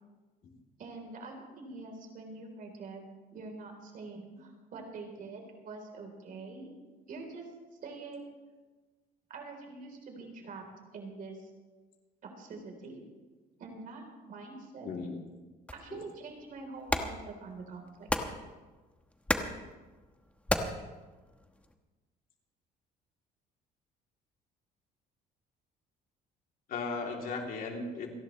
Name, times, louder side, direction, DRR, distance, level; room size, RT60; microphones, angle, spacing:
voice 1, 0.8-6.7 7.1-7.5 7.8-8.3 9.3-10.7 10.9-11.5 12.2-13.0 13.6-14.9 15.7-18.1, right 3 dB, 55° right, 3 dB, 3.7 m, -45 dB
voice 2, 14.8-15.2 15.9-16.0 26.7-28.1, left 4 dB, 60° left, 0 dB, 2.9 m, -36 dB
sound 1, 15.7-21.8, left 1 dB, 10° left, 1.1 m, -36 dB
28.5 x 11.0 x 3.2 m, 1.3 s
cardioid pair, 110°, 17 cm